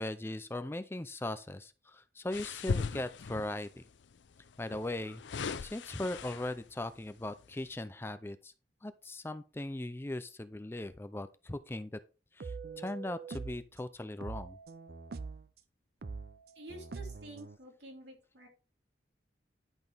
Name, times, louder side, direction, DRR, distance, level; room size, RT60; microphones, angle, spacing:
voice 1, 0.0-3.8 4.6-5.2 5.6-8.5 8.8-12.0 12.3-14.6, left 1 dB, 15° left, 0.4 m, -39 dB
sound 1, 2.3-3.7 4.7-6.7 7.3-7.5, left 4 dB, 80° left, 0.5 m, -38 dB
sound 2, 12.4-13.7 14.2-15.5 16.0-17.6, right 4 dB, 55° right, 0.5 m, -43 dB
voice 2, 16.5-18.5, right 1 dB, 75° right, 3.0 m, -50 dB
11.0 x 6.0 x 3.4 m
head